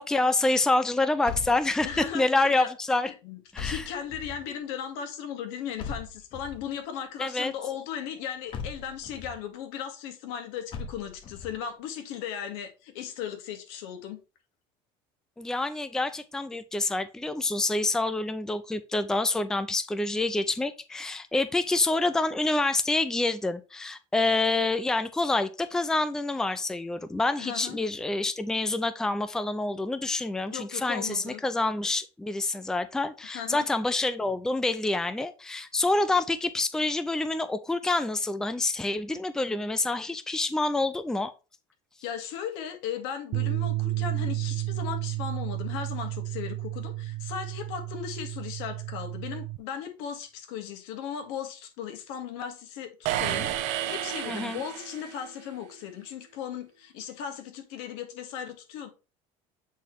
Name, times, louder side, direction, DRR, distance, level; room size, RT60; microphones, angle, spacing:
voice 1, 0.0-3.1 3.5-3.9 7.2-7.5 15.4-41.3 54.3-54.6, left 2 dB, 5° left, 0.4 m, -27 dB
sound 1, 1.2-2.2 3.5-4.5 5.8-6.7 8.5-9.4 10.7-11.6, left 6 dB, 40° left, 1.2 m, -39 dB
voice 2, 1.8-2.7 3.0-14.2 27.4-27.8 30.4-31.4 33.3-33.7 42.0-58.9, left 8 dB, 80° left, 1.7 m, -37 dB
sound 2, 43.3-49.6, right 17 dB, 45° right, 0.5 m, -32 dB
sound 3, 53.0-55.3, right 12 dB, 70° right, 0.9 m, -31 dB
8.2 x 4.1 x 3.1 m
cardioid pair, 130°, 13 cm